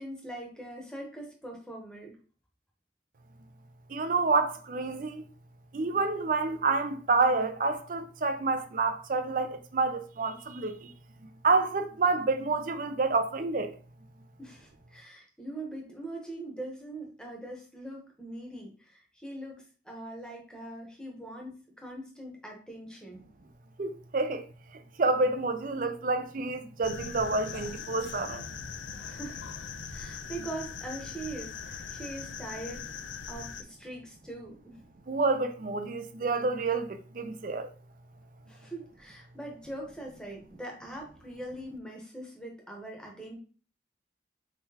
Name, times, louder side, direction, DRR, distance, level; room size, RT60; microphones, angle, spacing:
voice 1, 0.0-2.2 14.4-23.3 29.0-29.4 29.9-32.9 33.3-34.8 38.5-43.4, right 1 dB, 5° left, 0.9 m, -42 dB
voice 2, 3.9-5.2 5.7-10.9 11.4-13.7 23.8-24.5 24.7-28.5 35.1-37.7, right 3 dB, 45° right, 0.5 m, -28 dB
sound 1, 26.8-33.6, left 6 dB, 90° left, 0.4 m, -41 dB
4.4 x 3.8 x 2.8 m
head